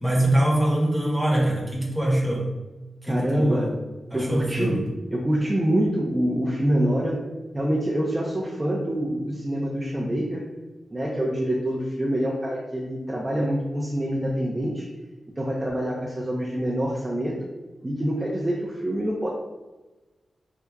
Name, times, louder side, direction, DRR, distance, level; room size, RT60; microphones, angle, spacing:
voice 1, 0.0-2.5 3.0-3.8 4.1-4.8, right 1 dB, 5° left, -5 dB, 1.1 m, -23 dB
voice 2, 3.0-3.7 4.1-4.8 5.1-7.3 7.5-10.4 10.9-14.9 15.4-17.3 17.8-19.3, equal, 20° right, -4 dB, 0.6 m, -25 dB
4.5 x 2.5 x 2.3 m, 1.2 s
wide cardioid pair, 90°, 0 cm